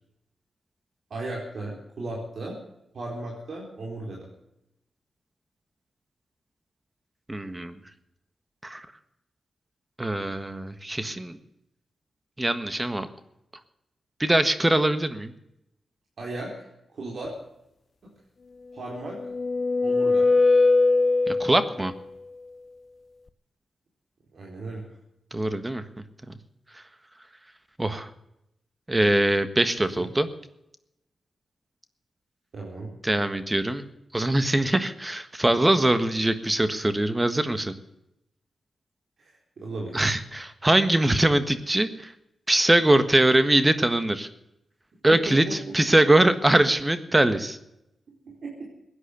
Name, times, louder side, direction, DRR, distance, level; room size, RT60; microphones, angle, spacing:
voice 1, 1.1-2.6 2.9-4.3 16.2-16.7 16.9-17.3 18.0-18.1 18.7-19.2 19.8-20.3 24.3-24.8 30.0-30.1 32.5-32.9 39.2-40.1 45.1-45.4 45.7-45.8 48.3-48.6, right 2 dB, 70° right, -3 dB, 4.4 m, -36 dB
voice 2, 7.3-7.7 8.6-8.9 10.0-11.4 12.4-13.1 14.2-15.3 21.3-21.9 25.3-25.8 27.8-28.1 28.9-30.3 33.0-33.9 34.1-37.7 39.9-42.1 42.5-44.3 45.0-47.6, right 1 dB, 20° right, 11 dB, 1.5 m, -22 dB
sound 1, 18.8-21.8, left 3 dB, 50° left, 0.9 m, -21 dB
17.0 x 9.8 x 8.1 m, 0.84 s
cardioid pair, 60°, 0 cm